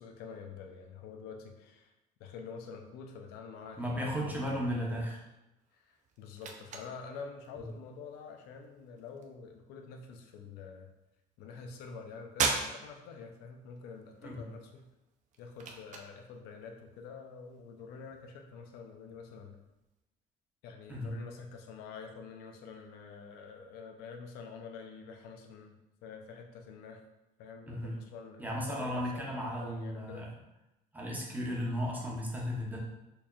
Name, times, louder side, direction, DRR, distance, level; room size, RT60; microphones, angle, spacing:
voice 1, 0.0-1.9 2.2-5.0 5.7-10.9 11.4-14.9 15.4-19.6 20.6-27.0 27.4-30.3, left 5 dB, 90° left, 3 dB, 0.5 m, -47 dB
voice 2, 3.8-5.2 7.6-7.7 14.2-14.4 20.9-21.1 27.7-27.9 28.4-30.3 30.9-32.8, equal, 10° right, -3 dB, 0.9 m, -35 dB
sound 1, 5.6-20.0, right 5 dB, 50° right, 0.5 m, -43 dB
4.5 x 2.7 x 2.4 m, 0.96 s
cardioid pair, 110°, 16 cm